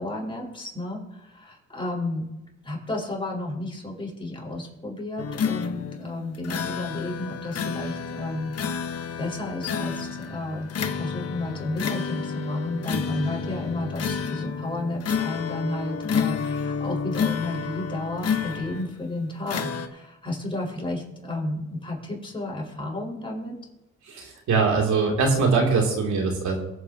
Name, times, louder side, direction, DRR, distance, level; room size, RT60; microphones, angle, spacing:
voice 1, 0.0-2.3 2.6-8.5 9.2-10.7 10.9-23.5, left 2 dB, 15° left, -2 dB, 4.6 m, -32 dB
sound 1, 5.2-19.0 19.5-19.9, left 6 dB, 55° left, 1.1 m, -30 dB
voice 2, 24.1-26.6, right 4 dB, 70° right, 0 dB, 2.7 m, -22 dB
23.0 x 7.7 x 2.8 m, 0.98 s
cardioid pair, 90°, 30 cm